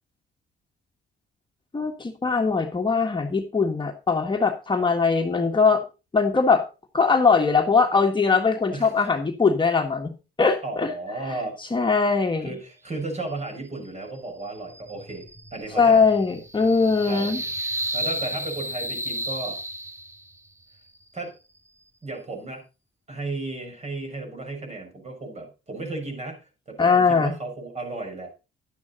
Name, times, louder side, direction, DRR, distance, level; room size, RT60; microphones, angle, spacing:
voice 1, 1.7-5.8 6.1-6.6 6.9-10.1 10.4-10.9 11.7-12.5 15.8-17.4 26.8-27.3, left 4 dB, 25° left, 3 dB, 1.6 m, -21 dB
voice 2, 10.6-11.6 12.4-16.0 17.1-17.6 17.9-19.6 21.1-21.3 22.0-22.6 23.1-28.3, right 2 dB, 35° right, 3 dB, 6.0 m, -34 dB
sound 1, 14.4-20.4, right 1 dB, 15° right, 1.0 m, -33 dB
12.0 x 9.6 x 4.2 m, 0.30 s
cardioid pair, 90°, 20 cm